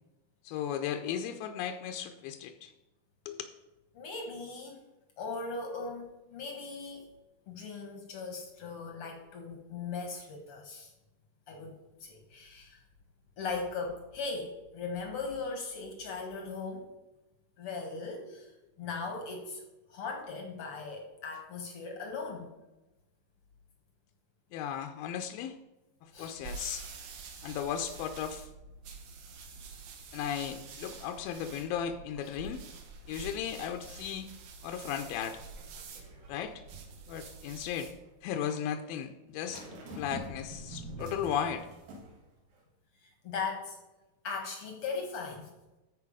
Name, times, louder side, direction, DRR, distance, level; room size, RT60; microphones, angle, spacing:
voice 1, 0.5-2.7 3.3-3.4 24.5-25.6 26.0-26.9 27.4-28.5 30.1-32.6 33.1-34.3 34.6-35.4 36.3-36.6 37.1-37.9 38.2-39.6 39.9-41.7, left 9 dB, 85° left, 7 dB, 2.4 m, -36 dB
voice 2, 3.9-4.8 5.2-7.0 7.5-10.9 11.5-12.8 13.4-16.8 17.6-18.5 18.8-19.6 19.9-22.5 26.1-26.4 32.3-32.4 43.0-43.8 44.2-45.5, left 4 dB, 65° left, 3 dB, 1.4 m, -39 dB
sound 1, 26.1-38.0, right 4 dB, 75° right, 2.8 m, -47 dB
sound 2, 35.3-37.8 39.4-42.2 42.6-42.7, right 1 dB, 90° right, 3.7 m, -46 dB
14.0 x 4.6 x 4.9 m, 1.0 s
omnidirectional pair, 4.1 m